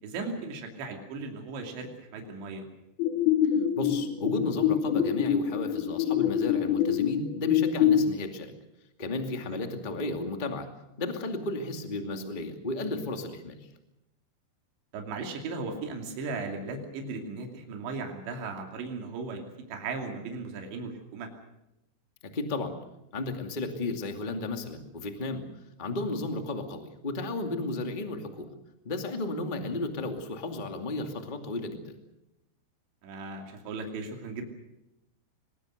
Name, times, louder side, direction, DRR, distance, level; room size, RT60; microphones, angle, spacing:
voice 1, 0.0-2.7 9.5-9.6 14.9-21.3 29.6-29.8 33.0-34.4, right 3 dB, 75° right, 3 dB, 5.0 m, -37 dB
sound 1, 3.0-8.0, left 10 dB, 60° left, 3.6 m, -25 dB
voice 2, 3.7-8.5 9.0-10.7 11.0-13.6 22.3-22.7 23.1-25.4 25.8-28.5 28.8-32.0, left 2 dB, 20° left, 5 dB, 1.2 m, -33 dB
23.5 x 22.0 x 6.6 m, 0.90 s
omnidirectional pair, 5.2 m